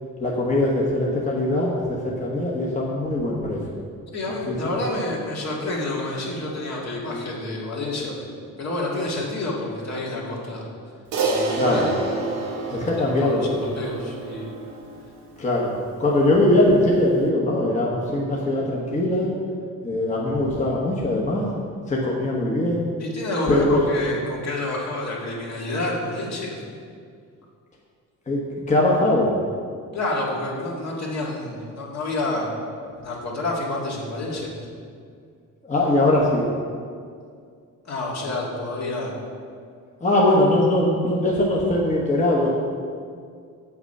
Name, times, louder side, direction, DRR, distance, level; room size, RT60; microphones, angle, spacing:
voice 1, 0.2-3.6 4.5-4.6 11.5-11.9 12.7-13.6 15.4-15.7 16.0-19.3 19.8-21.5 21.9-22.9 23.5-23.8 28.3-28.4 28.7-29.3 35.7-36.4 40.0-42.5, left 1 dB, 20° left, -4 dB, 1.2 m, -21 dB
voice 2, 4.1-10.7 11.3-12.0 12.6-12.9 13.2-14.5 23.0-26.6 29.9-32.5 33.0-34.5 37.8-39.1, left 2 dB, 55° left, -3 dB, 2.1 m, -28 dB
Crash cymbal, 11.1-15.7, right 3 dB, 85° right, 1.1 m, -29 dB
7.5 x 5.9 x 5.4 m, 2.2 s
cardioid pair, 100°, 33 cm